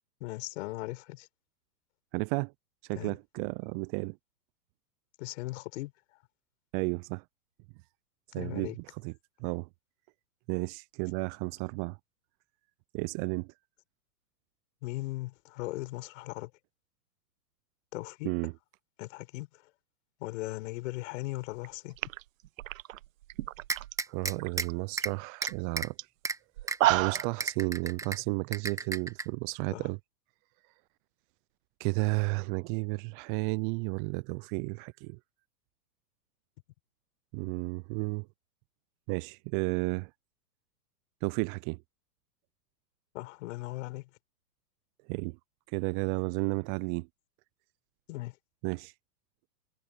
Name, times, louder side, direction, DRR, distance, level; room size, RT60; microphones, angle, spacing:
voice 1, 0.2-1.3 2.9-3.1 5.2-5.9 8.4-8.8 14.8-16.5 17.9-18.3 19.0-19.5 20.2-22.0 29.7-29.9 43.1-44.0 48.1-48.4, left 20 dB, 50° left, 6.3 m, -38 dB
voice 2, 2.1-2.5 2.9-4.2 6.7-7.2 8.3-8.7 9.0-9.1 9.4-9.7 10.5-12.0 12.9-13.5 18.2-18.5 24.1-25.9 26.9-30.0 31.8-35.2 37.3-38.3 39.1-40.1 41.2-41.8 45.1-45.4 45.7-47.1 48.6-48.9, right 30 dB, 35° right, 0.7 m, -32 dB
sound 1, 21.5-21.7 22.0-23.9 24.2-24.7 25.1-25.2 25.4-25.6 26.0-26.1 26.6-27.3, right 15 dB, 60° right, 1.0 m, -30 dB
sound 2, 23.7-24.7 25.0-25.1 25.4-25.9 26.3-26.4 26.7-26.8 27.2-28.2 28.5-29.2, right 3 dB, 5° right, 1.5 m, -32 dB
hypercardioid pair, 115°, 46 cm